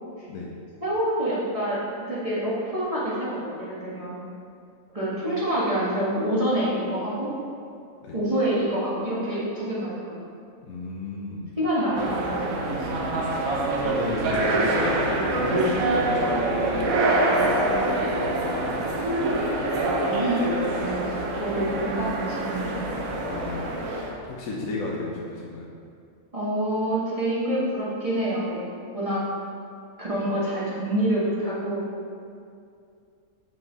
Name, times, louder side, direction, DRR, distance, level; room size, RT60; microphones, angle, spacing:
voice 1, 0.8-1.8 2.1-4.2 4.9-7.3 8.1-10.2 11.6-12.9 20.2-20.4 20.7-22.9 26.3-28.6 28.9-29.2 30.0-31.8, right 1 dB, 25° right, -9 dB, 1.6 m, -27 dB
voice 2, 10.7-11.4 12.9-13.4 13.8-17.0 17.4-19.5 23.2-23.6 24.2-25.6, left 2 dB, 70° left, -4 dB, 1.3 m, -34 dB
sound 1, 11.9-24.1, right 2 dB, 75° right, 1.3 m, -25 dB
7.6 x 5.7 x 4.1 m, 2.4 s
omnidirectional pair, 1.5 m